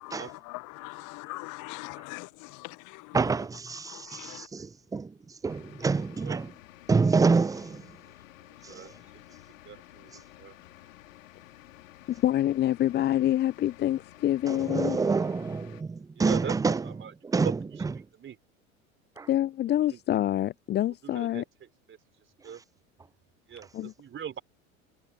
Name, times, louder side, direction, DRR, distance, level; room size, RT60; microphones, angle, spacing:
voice 1, 0.0-3.2 3.8-4.5, left 26 dB, 45° left, 1.3 m, -42 dB
voice 2, 3.1-6.5 6.9-8.0 8.6-9.0 10.1-10.2 14.5-18.1 19.2-19.3 22.4-22.6, right 4 dB, 10° right, 0.7 m, -28 dB
sound 1, 5.5-15.8, left 15 dB, 65° left, 3.0 m, -52 dB
voice 3, 8.7-9.2 9.7-10.6 16.2-17.5 18.2-18.4 19.8-20.0 21.0-21.4 21.9-22.0 22.4-22.6 23.5-24.4, right 8 dB, 30° right, 4.0 m, -40 dB
voice 4, 12.2-15.0 19.3-21.4 23.7-23.9, left 12 dB, 25° left, 0.7 m, -26 dB
figure-of-eight pair, 80°, 42 cm